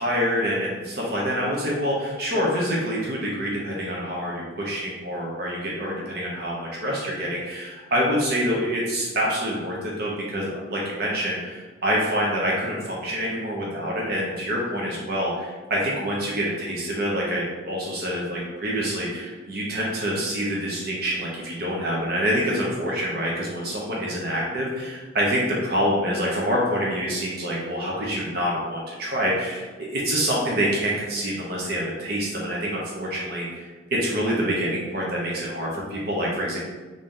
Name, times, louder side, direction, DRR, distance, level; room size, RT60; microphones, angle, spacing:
voice 1, 0.0-36.6, equal, 55° right, -4 dB, 0.7 m, -26 dB
3.2 x 2.6 x 3.7 m, 1.3 s
head